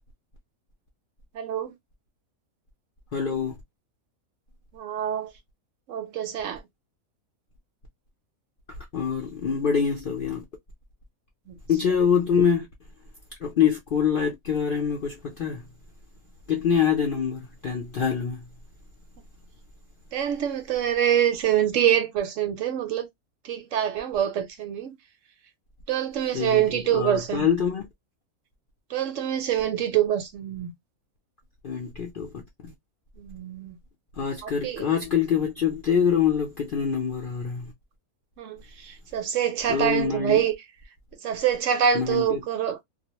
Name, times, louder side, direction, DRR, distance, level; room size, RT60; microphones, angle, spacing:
voice 1, 1.3-1.7 4.7-5.3 5.9-6.6 11.5-11.6 20.1-23.1 23.4-24.9 25.9-27.5 28.9-30.7 33.2-33.8 34.4-34.8 38.4-40.6 41.2-42.8, right 9 dB, 70° right, 0.9 m, -25 dB
voice 2, 3.1-3.6 8.9-10.4 11.7-12.7 13.4-15.6 16.5-18.4 26.3-27.9 31.6-32.4 34.2-37.7 39.7-40.5 41.9-42.4, left 7 dB, 60° left, 0.5 m, -25 dB
2.3 x 2.1 x 2.8 m
omnidirectional pair, 1.5 m